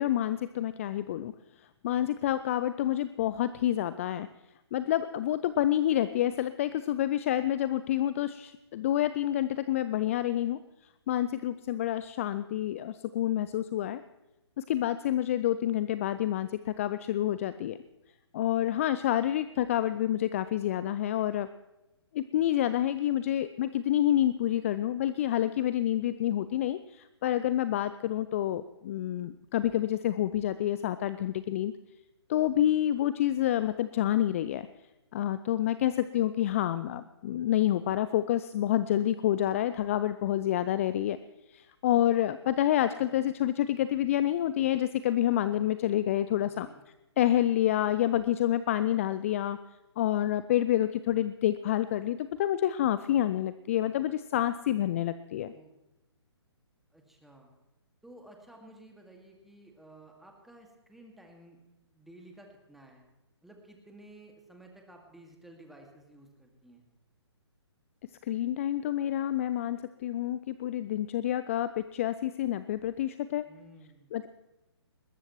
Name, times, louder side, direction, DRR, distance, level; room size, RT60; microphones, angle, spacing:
voice 1, 0.0-1.3 1.8-4.3 4.7-10.6 11.1-14.0 14.6-17.8 18.3-21.5 22.1-31.7 32.3-34.7 35.1-41.2 41.5-46.7 47.2-49.6 50.0-55.5 68.2-73.4 74.1-74.3, left 12 dB, 30° left, 14 dB, 0.4 m, -28 dB
voice 2, 55.4-55.7 56.9-57.6 58.0-61.6 61.9-63.1 63.4-66.9 73.5-74.2, right 1 dB, ahead, 1 dB, 2.0 m, -54 dB
20.5 x 18.5 x 3.1 m, 0.98 s
figure-of-eight pair, 130°, 14 cm